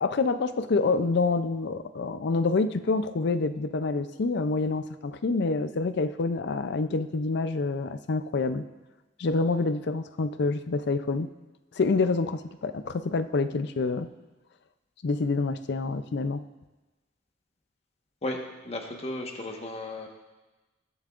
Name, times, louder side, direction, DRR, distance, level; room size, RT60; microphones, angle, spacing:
voice 1, 0.0-8.6 9.2-11.3 11.7-14.1 15.0-16.4, left 3 dB, 65° left, 11 dB, 0.5 m, -27 dB
voice 2, 18.2-20.1, left 1 dB, 35° left, 2 dB, 1.3 m, -35 dB
20.0 x 7.2 x 2.5 m, 1.1 s
head